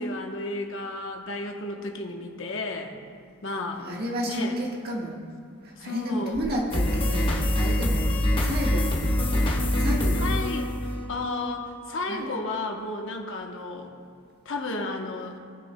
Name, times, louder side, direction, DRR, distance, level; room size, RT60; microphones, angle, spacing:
voice 1, 0.0-2.9 3.4-3.9 4.3-4.6 5.8-6.4 10.1-10.8 11.1-13.9 14.4-15.4, left 2 dB, 65° left, 2 dB, 1.0 m, -32 dB
voice 2, 3.7-5.2 5.6-8.0 8.4-8.9 9.7-10.3 12.1-12.3, equal, 50° right, -2 dB, 1.5 m, -31 dB
sound 1, 6.7-11.4, left 1 dB, 25° left, 1.0 m, -24 dB
18.0 x 6.6 x 2.2 m, 2.2 s
head